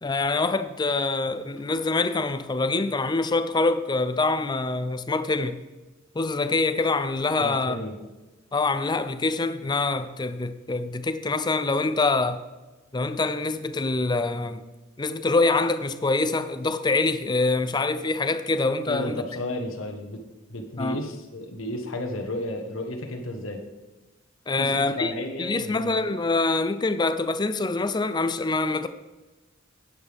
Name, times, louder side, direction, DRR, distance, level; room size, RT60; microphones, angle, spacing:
voice 1, 0.0-5.6 6.1-7.8 8.5-12.4 12.9-14.6 15.0-19.2 20.8-21.0 24.5-25.1 25.4-28.9, left 3 dB, 20° left, 0.5 m, -25 dB
voice 2, 7.4-7.9 18.9-20.2 20.5-23.6 24.6-25.9, left 1 dB, 70° left, 1.3 m, -33 dB
11.0 x 8.9 x 3.5 m
head